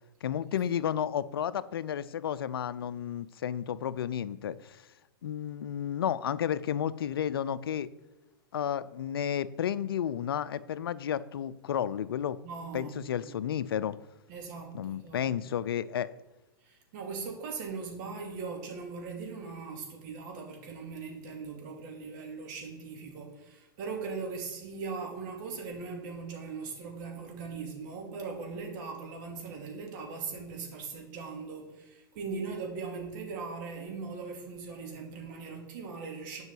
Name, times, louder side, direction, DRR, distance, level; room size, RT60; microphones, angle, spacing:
voice 1, 0.2-4.8 5.2-7.9 8.5-12.4 12.7-14.0 14.7-16.1, left 9 dB, 75° left, 17 dB, 0.5 m, -32 dB
voice 2, 12.4-13.5 14.3-15.2 16.6-36.4, right 4 dB, 55° right, 1 dB, 2.7 m, -40 dB
7.9 x 5.5 x 7.6 m, 1.0 s
hypercardioid pair, 115°, 12 cm